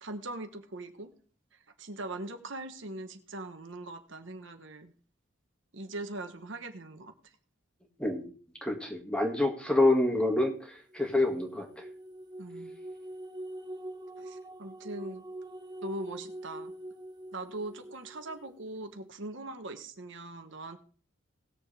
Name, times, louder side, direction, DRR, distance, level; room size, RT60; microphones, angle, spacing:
voice 1, 0.0-1.1 1.8-4.9 5.7-7.1 12.4-12.8 14.2-15.2 15.8-16.7 17.3-20.8, right 2 dB, 60° right, 7 dB, 1.2 m, -41 dB
voice 2, 8.6-10.5 10.9-11.7, left 2 dB, 5° left, 2 dB, 1.9 m, -26 dB
sound 1, 10.9-18.7, right 1 dB, 20° right, 1.1 m, -44 dB
18.5 x 7.1 x 3.4 m, 0.42 s
head